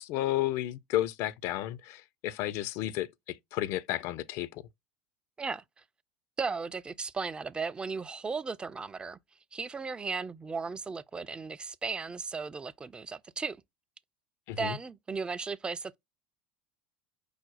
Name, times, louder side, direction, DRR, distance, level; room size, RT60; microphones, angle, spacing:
voice 1, 0.0-4.6 14.5-14.8, left 14 dB, 55° left, 0.4 m, -32 dB
voice 2, 6.4-9.2 9.5-13.6 14.6-15.9, right 4 dB, 15° right, 0.4 m, -36 dB
4.9 x 2.0 x 4.0 m
hypercardioid pair, 75°, 6 cm